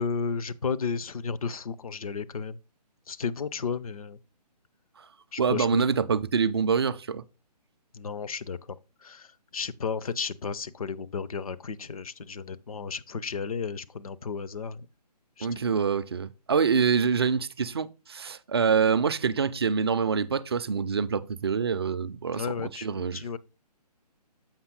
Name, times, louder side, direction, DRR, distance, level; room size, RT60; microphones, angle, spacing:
voice 1, 0.0-2.6 3.1-4.2 5.3-5.7 7.9-8.6 9.0-9.3 9.5-14.9 15.4-15.5 22.3-23.4, left 5 dB, 55° left, 0.6 m, -33 dB
voice 2, 5.4-7.2 15.4-23.2, right 6 dB, 40° right, 0.4 m, -26 dB
7.2 x 5.5 x 3.7 m
figure-of-eight pair, 140°, 21 cm